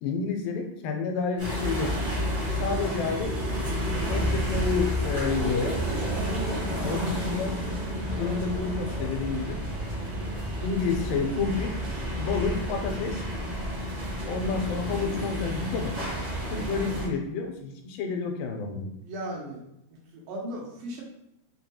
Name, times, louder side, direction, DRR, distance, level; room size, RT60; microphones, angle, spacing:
voice 1, 0.0-1.9 2.6-3.3 4.1-5.8 6.8-7.6 8.2-9.6 10.6-11.7 12.1-13.2 14.2-15.9 16.5-18.9, left 5 dB, 90° left, 4 dB, 2.2 m, -29 dB
sound 1, 1.4-17.1, equal, 60° right, 0.6 m, -30 dB
voice 2, 19.0-19.6 19.9-21.0, right 1 dB, 90° right, -2 dB, 2.6 m, -37 dB
5.6 x 2.2 x 2.8 m, 0.82 s
omnidirectional pair, 3.8 m